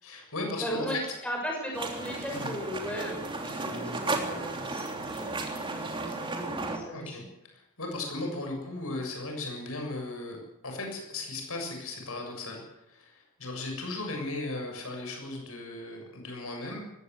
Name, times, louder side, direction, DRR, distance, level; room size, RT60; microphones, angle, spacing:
voice 1, 0.0-0.9 2.3-2.5 6.9-7.2 7.5-10.4 10.6-12.6 12.9-16.8, left 2 dB, 70° left, 2 dB, 7.2 m, -36 dB
voice 2, 0.6-7.3, equal, 5° left, -1 dB, 6.6 m, -37 dB
sound 1, 1.7-6.8, right 2 dB, 20° right, 3.1 m, -34 dB
20.0 x 17.0 x 8.2 m, 0.86 s
head